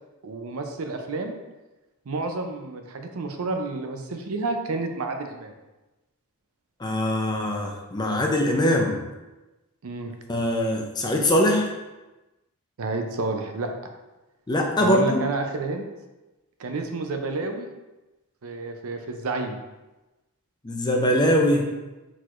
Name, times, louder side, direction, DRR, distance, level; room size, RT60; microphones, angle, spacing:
voice 1, 0.2-1.3 2.1-5.5 9.8-10.1 12.8-13.7 14.8-15.9 16.6-17.7 18.4-19.6, right 3 dB, 70° right, 5 dB, 0.5 m, -30 dB
voice 2, 6.8-9.0 10.3-11.7 14.5-15.2 20.6-21.6, left 1 dB, 20° left, 1 dB, 0.5 m, -22 dB
4.5 x 4.0 x 2.5 m, 1.1 s
head